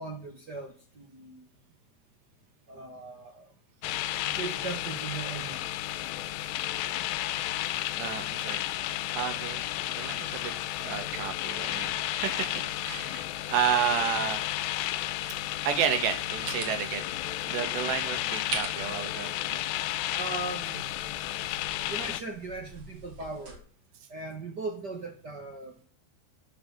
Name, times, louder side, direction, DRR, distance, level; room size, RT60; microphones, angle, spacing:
voice 1, 0.0-1.5 2.7-3.5 4.2-5.8 20.1-20.9 21.9-23.6 24.1-25.8, right 3 dB, 65° right, 5 dB, 1.0 m, -38 dB
sound 1, 3.8-22.2, left 14 dB, 90° left, 3.0 m, -32 dB
voice 2, 8.0-8.6 9.1-9.6 9.9-10.5 10.8-14.7 15.7-17.1 17.4-19.3, right 8 dB, 85° right, 7 dB, 4.3 m, -31 dB
sound 2, 16.0-23.6, right 3 dB, 35° right, 3.2 m, -43 dB
13.0 x 8.2 x 7.4 m, 0.43 s
omnidirectional pair, 4.8 m